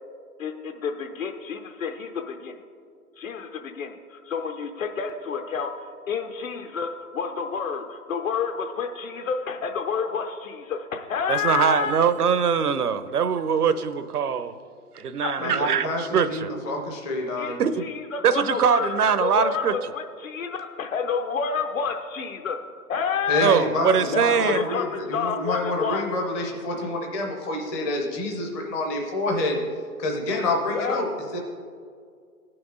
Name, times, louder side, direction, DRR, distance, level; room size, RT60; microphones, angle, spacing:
voice 1, 0.4-2.5 3.2-5.7 6.1-11.9 15.2-15.6 17.4-22.6 22.9-23.6 24.1-26.0 30.7-31.0, left 6 dB, 60° left, 0.8 m, -29 dB
voice 2, 11.3-14.6 15.0-16.5 17.6-17.9 18.2-19.9 23.4-24.6, right 7 dB, 75° right, 0.7 m, -22 dB
voice 3, 15.4-17.6 23.3-29.6 30.0-31.1 31.3-31.4, left 2 dB, 10° left, 0.5 m, -28 dB
17.5 x 6.0 x 3.8 m
figure-of-eight pair, 125°, 46 cm